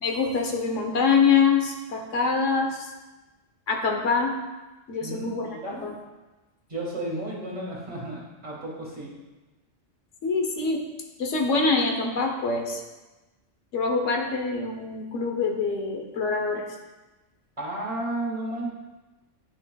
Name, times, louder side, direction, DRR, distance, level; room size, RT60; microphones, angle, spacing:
voice 1, 0.0-2.9 3.7-4.4 4.9-6.0 10.2-10.8 11.2-12.8 13.7-16.6, left 5 dB, 80° left, 2 dB, 1.3 m, -25 dB
voice 2, 5.0-5.8 6.7-9.1 17.6-18.7, right 1 dB, 35° right, -4 dB, 1.8 m, -33 dB
10.5 x 6.3 x 2.3 m, 1.1 s
omnidirectional pair, 1.2 m